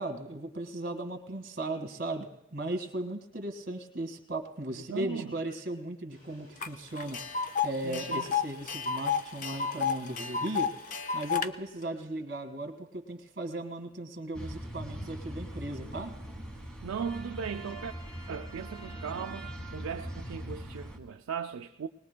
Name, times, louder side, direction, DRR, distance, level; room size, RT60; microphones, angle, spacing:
voice 1, 0.0-10.7 11.1-16.1, right 2 dB, 50° right, 1.7 m, -37 dB
voice 2, 4.7-5.4 7.8-8.3 16.8-17.9 18.3-21.9, right 6 dB, 85° right, 0.4 m, -38 dB
sound 1, 6.1-12.2, equal, 70° left, 4.3 m, -60 dB
Tick, 6.6-6.7 7.0-11.5, left 6 dB, 35° left, 0.5 m, -31 dB
sound 2, 14.3-21.0, right 1 dB, 5° left, 1.3 m, -41 dB
20.5 x 20.5 x 2.2 m
head